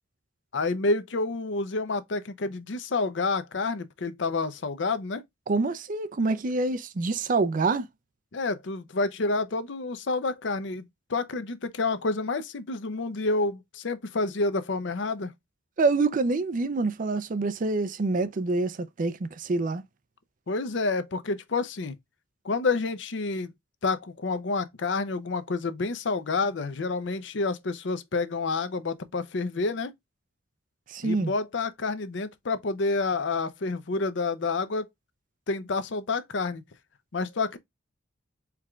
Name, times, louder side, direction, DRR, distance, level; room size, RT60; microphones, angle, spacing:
voice 1, 0.5-5.2 8.3-15.3 20.5-22.0 22.4-23.5 23.8-29.9 31.0-34.9 35.5-36.6 37.1-37.6, left 3 dB, 70° left, 0.6 m, -29 dB
voice 2, 5.5-7.9 15.8-19.8 30.9-31.3, right 3 dB, 45° right, 0.4 m, -26 dB
4.6 x 3.6 x 2.3 m
head